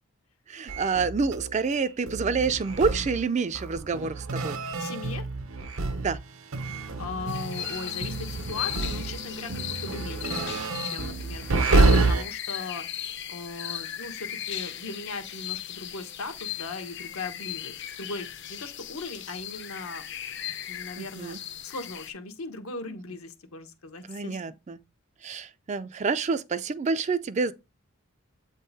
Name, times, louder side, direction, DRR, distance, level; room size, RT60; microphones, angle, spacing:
voice 1, 0.5-4.6 6.0-6.2 21.0-21.4 24.1-24.8 25.2-27.5, right 4 dB, 35° right, 0.4 m, -28 dB
sound 1, 0.7-6.2 6.5-12.2, right 3 dB, 75° right, 0.8 m, -28 dB
voice 2, 4.8-5.3 7.0-12.9 13.3-20.0 20.7-21.4 21.6-24.4, left 3 dB, 80° left, 1.1 m, -38 dB
sound 2, 7.3-22.1, left 11 dB, 55° left, 0.6 m, -37 dB
8.0 x 3.7 x 4.0 m
head